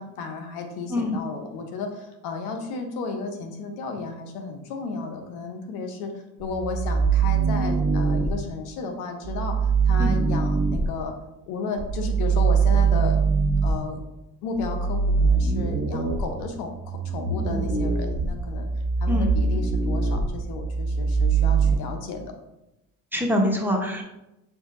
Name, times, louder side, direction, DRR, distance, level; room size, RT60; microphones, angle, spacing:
voice 1, 0.0-6.1 6.4-9.6 9.8-11.1 11.5-13.2 13.6-14.0 14.4-18.7 19.0-22.3, left 4 dB, 75° left, 5 dB, 0.8 m, -33 dB
sound 1, 6.4-8.3 9.2-10.9 11.8-13.8 14.5-21.8, right 5 dB, 40° right, 1.1 m, -23 dB
voice 2, 23.1-24.0, left 1 dB, 5° right, 0 dB, 0.7 m, -24 dB
6.4 x 2.6 x 2.5 m, 0.92 s
supercardioid pair, 80°, 37 cm